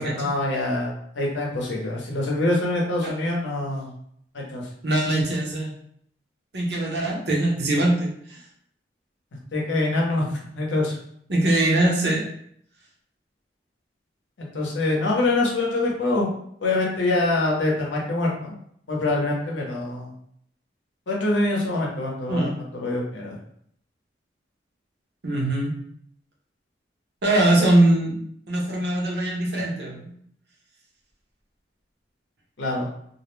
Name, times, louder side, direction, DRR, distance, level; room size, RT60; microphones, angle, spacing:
voice 1, 0.0-3.9 4.3-4.7 9.5-10.9 14.4-16.3 16.6-18.5 18.9-20.1 21.1-23.4 32.6-32.9, left 2 dB, 85° left, -1 dB, 0.7 m, -25 dB
voice 2, 4.8-5.7 6.5-8.4 11.3-12.2 22.3-22.5 25.2-25.7 27.2-30.1, right 1 dB, 60° right, -2 dB, 0.7 m, -22 dB
2.4 x 2.0 x 3.1 m, 0.67 s
head